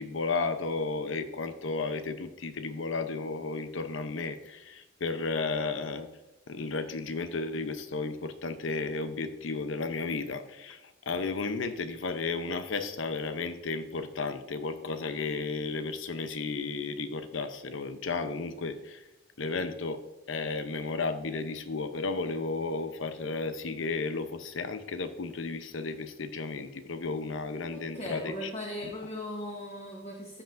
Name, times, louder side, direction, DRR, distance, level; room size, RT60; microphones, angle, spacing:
voice 1, 0.0-6.1 6.5-19.0 19.4-28.5 28.8-28.9, left 3 dB, 70° left, 10 dB, 0.7 m, -33 dB
voice 2, 27.7-30.4, left 1 dB, 30° left, -1 dB, 1.1 m, -38 dB
14.0 x 5.6 x 2.6 m, 0.97 s
head